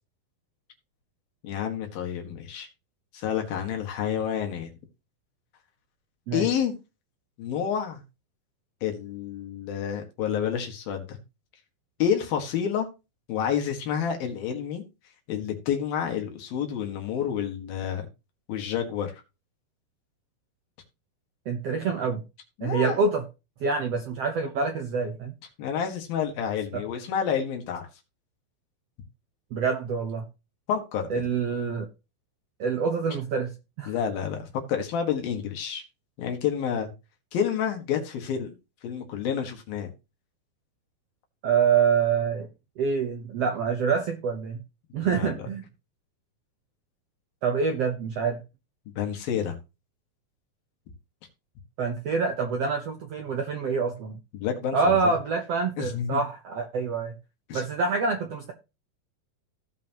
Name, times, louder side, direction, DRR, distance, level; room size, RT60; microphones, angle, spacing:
voice 1, 1.4-2.7 3.1-4.7 6.3-6.7 7.4-8.0 8.8-11.2 12.0-12.9 13.3-14.8 15.3-18.1 18.5-19.1 22.6-23.0 25.6-27.9 30.7-31.1 33.9-34.4 34.7-35.8 36.2-36.9 37.3-38.5 38.8-39.9 45.0-45.4 49.0-49.6 54.3-54.8 55.0-55.2 55.8-56.2 57.5-57.6, left 8 dB, 75° left, 3 dB, 3.6 m, -29 dB
voice 2, 21.5-22.2 22.6-23.2 23.6-25.3 26.7-26.8 29.5-30.2 31.1-31.9 32.6-33.5 33.8-33.9 41.4-42.5 42.8-44.6 44.9-45.7 47.4-48.4 51.8-54.2 54.7-57.1 57.5-58.5, right 5 dB, 70° right, 5 dB, 1.5 m, -26 dB
16.5 x 5.5 x 3.0 m, 0.28 s
omnidirectional pair, 4.2 m